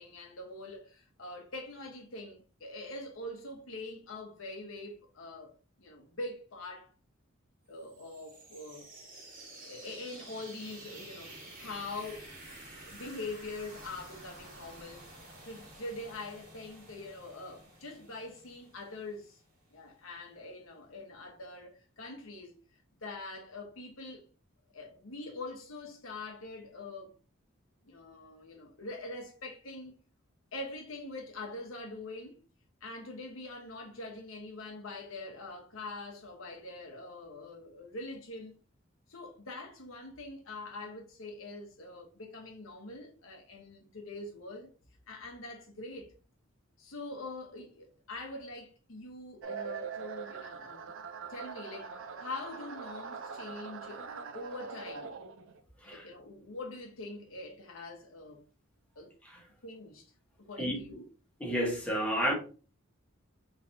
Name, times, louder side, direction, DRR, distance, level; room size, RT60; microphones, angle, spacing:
voice 1, 0.0-5.5 5.8-6.9 7.7-8.9 9.7-12.3 12.8-15.0 15.4-19.4 19.7-22.6 23.0-24.2 24.7-27.1 27.8-29.9 30.5-32.4 32.8-38.5 39.1-44.7 45.1-46.2 46.8-50.9 51.3-54.1 54.3-55.1 55.8-58.4 58.9-59.1 59.6-60.1 60.4-61.0, left 2 dB, 75° left, 1.2 m, -44 dB
sound 1, 7.8-19.5, right 2 dB, 40° right, 1.4 m, -51 dB
sound 2, 49.4-55.6, right 6 dB, 70° right, 0.5 m, -42 dB
voice 2, 61.4-62.3, equal, 5° left, 1.2 m, -31 dB
3.8 x 3.3 x 2.7 m
head